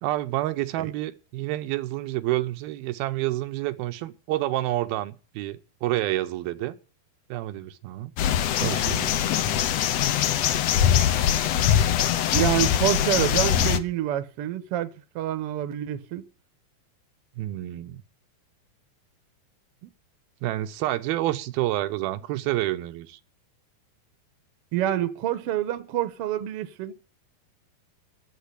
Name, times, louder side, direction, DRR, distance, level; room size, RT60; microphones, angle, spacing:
voice 1, 0.0-6.8 7.3-8.1 8.6-9.2 17.4-18.0 19.8-19.9 20.4-23.2, right 15 dB, 90° right, 2.8 m, -29 dB
sound 1, 8.2-13.8, left 10 dB, 80° left, 1.5 m, -22 dB
voice 2, 12.3-14.9 15.1-16.2 24.7-26.9, right 12 dB, 70° right, 1.4 m, -27 dB
11.5 x 7.5 x 9.9 m
omnidirectional pair, 4.2 m